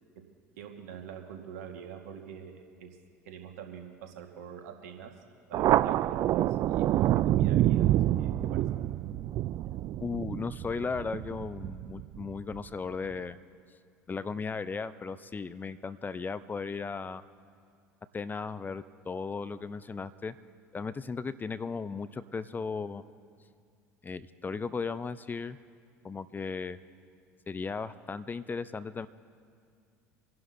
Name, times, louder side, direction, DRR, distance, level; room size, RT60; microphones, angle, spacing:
voice 1, 0.6-2.9 3.2-5.1 5.5-8.6, right 7 dB, 75° right, 4 dB, 1.6 m, -45 dB
Thunder, 5.5-12.6, right 13 dB, 45° right, 0.3 m, -27 dB
voice 2, 10.0-13.4 14.1-17.2 18.1-20.3 20.7-23.0 24.0-25.6 26.0-26.8 27.5-29.1, left 5 dB, 20° left, 14 dB, 0.5 m, -36 dB
27.0 x 11.5 x 2.7 m, 2.2 s
hypercardioid pair, 70°, 8 cm